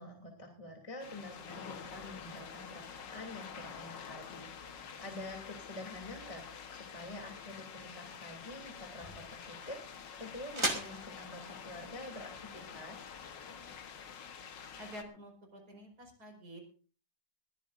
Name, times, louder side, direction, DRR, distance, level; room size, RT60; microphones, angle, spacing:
voice 1, 0.0-13.1, left 2 dB, 15° left, 2 dB, 3.0 m, -47 dB
sound 1, 1.0-15.0, left 6 dB, 75° left, 2.0 m, -48 dB
sound 2, 7.9-13.8, right 1 dB, 15° right, 2.8 m, -42 dB
voice 2, 14.8-16.6, equal, 55° right, 4 dB, 5.7 m, -49 dB
22.0 x 15.5 x 2.6 m, 0.39 s
omnidirectional pair, 2.0 m